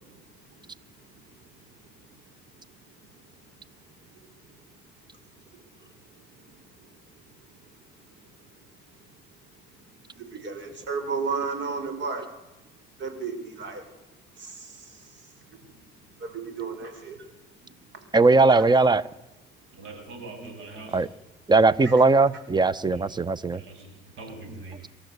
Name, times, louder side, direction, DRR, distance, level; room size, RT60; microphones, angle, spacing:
voice 1, 0.0-8.5 9.0-9.2 9.8-12.2 13.0-13.9 14.4-15.8 16.1-18.1 18.5-18.6 21.8-21.9, right 5 dB, 65° right, 7 dB, 5.4 m, -38 dB
voice 2, 18.1-19.1 20.9-21.1 21.5-23.6, right 3 dB, 20° right, 19 dB, 0.9 m, -19 dB
voice 3, 19.7-21.1 22.9-23.0 23.5-24.9, right 3 dB, 85° right, 3 dB, 7.4 m, -43 dB
25.5 x 13.0 x 8.1 m, 1.0 s
cardioid pair, 90°, 20 cm